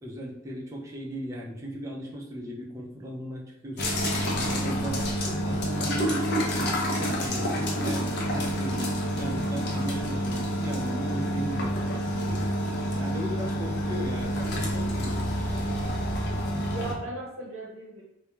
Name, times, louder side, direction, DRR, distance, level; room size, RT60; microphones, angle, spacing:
voice 1, 0.0-4.0 4.3-12.5 12.9-15.2, equal, 15° right, -3 dB, 0.4 m, -37 dB
sound 1, 3.8-16.9, equal, 55° left, 0.5 m, -28 dB
voice 2, 16.4-18.0, right 2 dB, 80° right, -4 dB, 0.7 m, -38 dB
2.2 x 2.1 x 3.0 m, 0.83 s
head